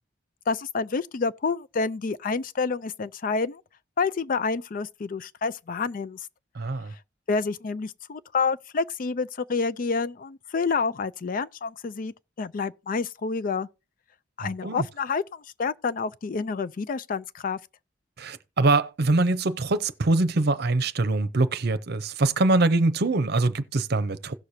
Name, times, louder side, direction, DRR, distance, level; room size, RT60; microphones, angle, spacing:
voice 1, 0.5-3.6 4.0-6.2 7.3-13.7 14.4-17.6, left 4 dB, 50° left, 0.4 m, -28 dB
voice 2, 6.5-6.9 14.4-14.9 18.2-24.3, right 2 dB, 60° right, 0.7 m, -23 dB
17.0 x 6.5 x 2.8 m
head